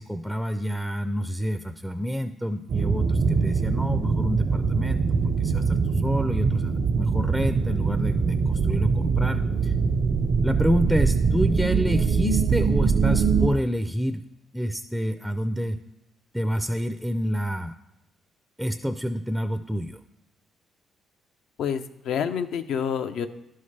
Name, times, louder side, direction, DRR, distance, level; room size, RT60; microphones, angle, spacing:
voice 1, 0.0-5.0 5.4-9.7 10.4-14.2 14.5-15.8 16.3-17.7 18.6-20.0, equal, ahead, 7 dB, 0.4 m, -28 dB
sound 1, 2.7-13.5, right 5 dB, 55° right, 0.6 m, -23 dB
voice 2, 21.6-23.3, left 7 dB, 80° left, 8 dB, 0.6 m, -28 dB
11.0 x 5.5 x 3.3 m, 0.96 s
cardioid pair, 90°, 0 cm